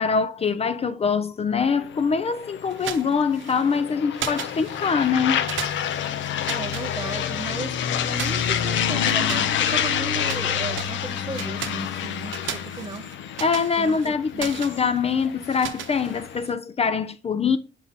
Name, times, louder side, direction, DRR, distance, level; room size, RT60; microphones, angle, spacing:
voice 1, 0.0-5.4 13.4-17.6, left 5 dB, 30° left, 0.4 m, -24 dB
sound 1, 1.6-16.5, left 9 dB, 70° left, 0.6 m, -28 dB
sound 2, 2.7-3.8 4.2-5.1 5.5-7.6 8.1-10.5 10.7-16.5, right 9 dB, 75° right, 0.8 m, -37 dB
voice 2, 6.5-7.8 8.0-13.0 13.8-14.6, right 3 dB, 20° right, 0.5 m, -35 dB
5.6 x 4.6 x 4.0 m
cardioid pair, 90°, 20 cm